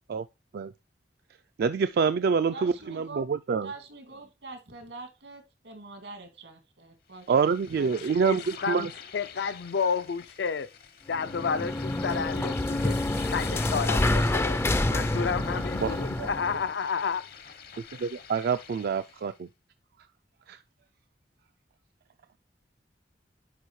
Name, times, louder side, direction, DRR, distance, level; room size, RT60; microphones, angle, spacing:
voice 1, 1.6-3.7 7.3-8.9 15.8-16.3 18.0-19.5 20.5-20.6, right 5 dB, 60° right, 0.3 m, -26 dB
voice 2, 2.5-3.3 3.6-7.3 7.8-8.1, right 3 dB, 90° right, 2.4 m, -44 dB
sound 1, 7.1-19.4, left 7 dB, 60° left, 0.8 m, -46 dB
voice 3, 8.0-8.9 9.1-10.7 11.1-17.3, left 6 dB, 75° left, 0.5 m, -31 dB
sound 2, 11.1-16.6, left 1 dB, 15° left, 0.3 m, -28 dB
10.0 x 5.0 x 3.1 m
head